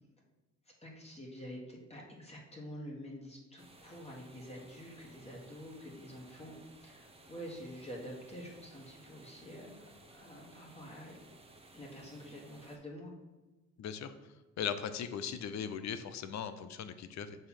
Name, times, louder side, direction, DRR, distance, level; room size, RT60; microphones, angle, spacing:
voice 1, 0.8-11.2 11.7-13.1, equal, 20° left, -2 dB, 1.6 m, -47 dB
sound 1, 3.6-12.8, right 2 dB, 20° right, 1.2 m, -58 dB
voice 2, 13.8-14.1 14.6-17.4, left 8 dB, 65° left, 11 dB, 0.7 m, -38 dB
6.8 x 3.3 x 5.9 m, 1.2 s
cardioid pair, 90°, 30 cm